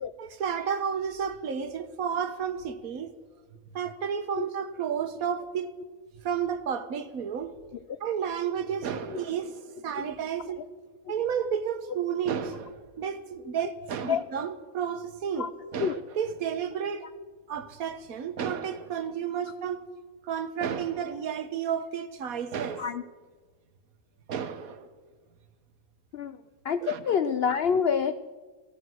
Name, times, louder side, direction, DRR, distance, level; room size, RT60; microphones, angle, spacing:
voice 1, 0.2-3.1 3.7-5.7 6.2-7.5 8.0-10.6 11.1-17.1 17.5-19.8 20.2-22.9 24.3-24.9 26.8-27.2, right 7 dB, 65° right, 1.3 m, -32 dB
voice 2, 26.6-28.1, left 6 dB, 85° left, 0.5 m, -26 dB
16.0 x 13.5 x 6.2 m
omnidirectional pair, 1.7 m